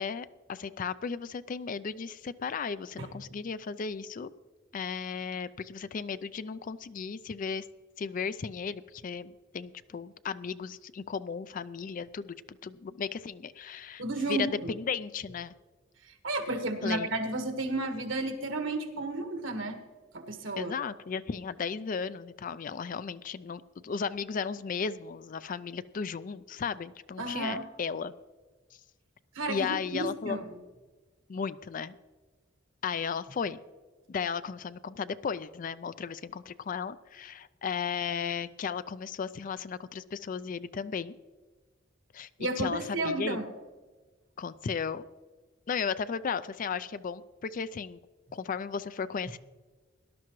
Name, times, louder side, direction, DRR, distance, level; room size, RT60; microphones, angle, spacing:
voice 1, 0.0-4.3 4.7-7.6 8.0-14.0 14.3-15.5 16.8-17.1 20.6-28.1 29.5-30.4 31.3-31.9 32.8-33.6 34.1-41.1 42.1-42.3 42.6-43.4 44.4-45.1 45.7-48.0 48.3-49.4, left 6 dB, 45° left, 15 dB, 0.4 m, -35 dB
voice 2, 14.0-14.7 16.0-19.8 20.1-20.7 27.2-27.6 29.3-30.5 42.4-43.5, right 2 dB, 75° right, 5 dB, 1.6 m, -32 dB
18.0 x 12.0 x 3.1 m, 1.3 s
head